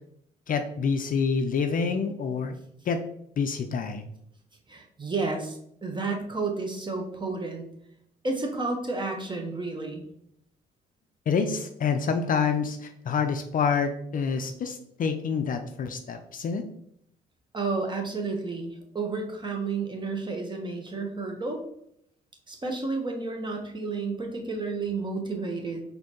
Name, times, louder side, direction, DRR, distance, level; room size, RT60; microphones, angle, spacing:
voice 1, 0.5-2.6 2.9-3.0 3.4-4.0 11.3-16.7, left 5 dB, 45° left, 7 dB, 0.4 m, -27 dB
voice 2, 4.7-7.7 8.2-10.0 17.5-21.6 22.5-25.8, right 3 dB, 25° right, 2 dB, 1.1 m, -31 dB
4.1 x 2.8 x 3.0 m, 0.72 s
hypercardioid pair, 50°, 20 cm